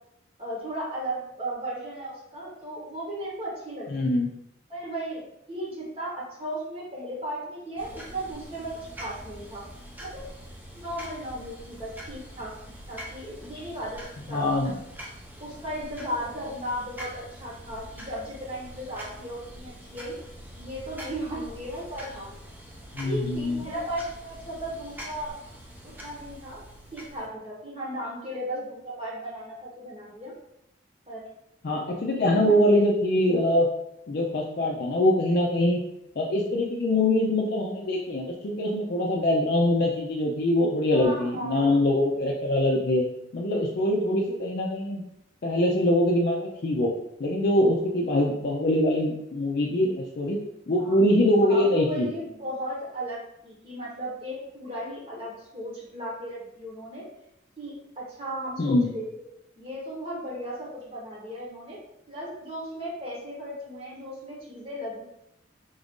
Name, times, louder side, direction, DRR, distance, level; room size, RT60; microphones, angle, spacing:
voice 1, 0.4-4.0 4.7-9.6 10.0-10.2 10.7-12.6 12.9-14.9 15.4-20.2 20.6-22.3 23.0-25.4 25.8-26.6 26.9-30.3 31.1-31.3 32.3-32.6 40.9-41.8 50.7-51.0 51.4-57.0 57.6-59.1 59.6-61.8 62.1-65.0, right 1 dB, 30° right, -5 dB, 1.0 m, -36 dB
voice 2, 3.9-4.3 14.3-14.8 22.9-23.6 31.6-33.7 34.1-35.8 36.2-43.0 43.3-45.0 45.4-46.9 47.2-50.4 50.7-52.1 58.6-58.9, left 1 dB, 50° left, -2 dB, 0.4 m, -23 dB
sound 1, 7.8-27.3, equal, 10° right, 0.5 m, -44 dB
3.9 x 2.5 x 3.5 m, 0.82 s
head